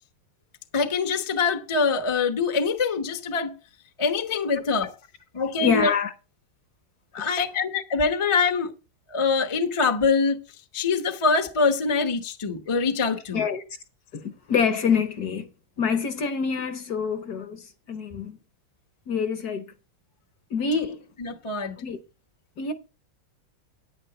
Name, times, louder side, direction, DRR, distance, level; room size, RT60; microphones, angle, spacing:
voice 1, 0.7-3.6 4.0-4.9 5.3-5.9 7.1-8.7 9.1-10.4 10.7-13.4 20.7-20.9 21.2-21.7, left 4 dB, 45° left, 0.4 m, -24 dB
voice 2, 5.6-6.1 7.1-7.3 13.3-13.6 14.1-15.5 15.8-18.4 19.1-19.6 20.5-21.0 21.8-22.0 22.6-22.7, left 6 dB, 60° left, 1.1 m, -26 dB
10.0 x 9.5 x 3.9 m
omnidirectional pair, 2.4 m